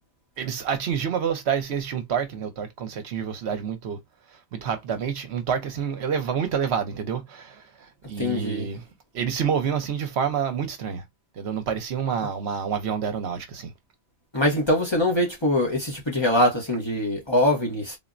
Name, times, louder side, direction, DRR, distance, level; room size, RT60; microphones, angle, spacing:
voice 1, 0.4-4.0 4.5-8.9 9.1-11.0 11.4-13.7, right 7 dB, 70° right, 0.9 m, -28 dB
voice 2, 8.2-8.7 14.3-17.9, left 1 dB, 25° left, 0.8 m, -23 dB
3.7 x 2.1 x 2.4 m
omnidirectional pair, 1.2 m